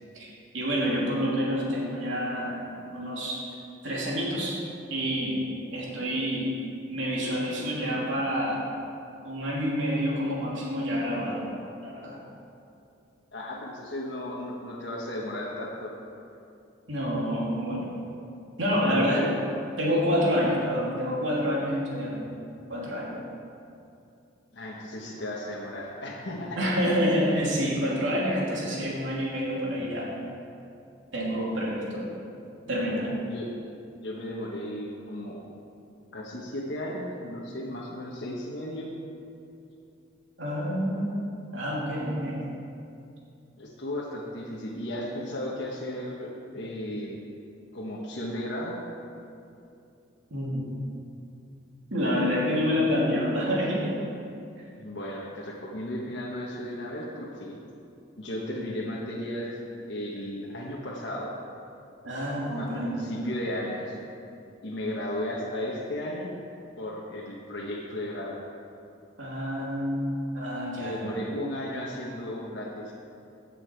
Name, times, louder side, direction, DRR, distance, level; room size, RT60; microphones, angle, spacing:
voice 1, 0.5-3.5 3.8-4.6 4.9-5.4 5.7-6.5 6.9-8.6 9.2-11.5 11.8-12.2 16.9-17.9 18.6-19.2 19.8-22.3 22.7-23.2 26.6-30.1 31.1-32.1 32.7-33.1 40.4-41.1 41.5-42.4 50.3-50.7 51.9-54.0 62.0-63.1 69.2-70.1 70.3-71.3, equal, 90° right, -5 dB, 2.8 m, -28 dB
voice 2, 13.3-15.9 18.6-19.3 20.4-20.5 24.5-26.6 33.2-33.5 33.9-35.5 36.1-38.9 43.6-47.2 47.7-48.7 54.8-57.6 58.2-59.6 59.9-61.3 62.5-64.0 64.6-66.3 66.8-68.4 70.8-72.9, left 1 dB, 65° left, -4 dB, 1.3 m, -35 dB
15.5 x 7.0 x 4.6 m, 2.6 s
head